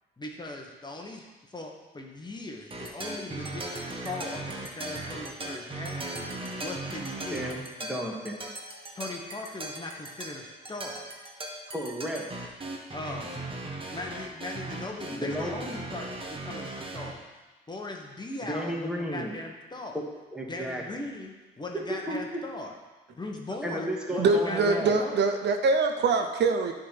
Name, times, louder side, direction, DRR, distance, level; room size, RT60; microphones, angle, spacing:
voice 1, 0.2-6.1 6.6-7.5 8.9-11.1 12.9-13.4 13.9-17.3 17.7-20.0 20.5-22.7 23.1-25.2, left 2 dB, 20° left, 1 dB, 1.2 m, -39 dB
sound 1, 2.7-17.1, right 2 dB, 25° right, 1.3 m, -38 dB
voice 2, 7.3-7.6 7.9-8.4 11.7-12.3 12.6-12.7 15.2-15.8 18.5-19.3 19.9-20.0 20.3-20.8 21.7-22.2 23.6-25.1, equal, 5° right, -1 dB, 1.7 m, -33 dB
voice 3, 24.2-26.7, right 4 dB, 60° right, 6 dB, 0.7 m, -24 dB
9.9 x 3.9 x 5.8 m, 1.2 s
cardioid pair, 90°, 20 cm